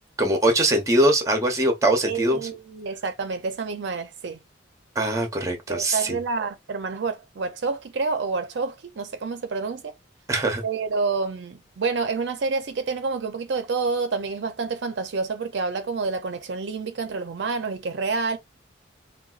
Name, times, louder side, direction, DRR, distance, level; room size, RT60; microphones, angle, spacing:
voice 1, 0.2-2.5 5.0-6.2 10.3-10.6, right 1 dB, 15° right, 0.7 m, -22 dB
voice 2, 2.0-4.4 5.7-9.9 10.6-18.4, right 4 dB, 70° right, 0.4 m, -28 dB
3.9 x 2.2 x 2.4 m
head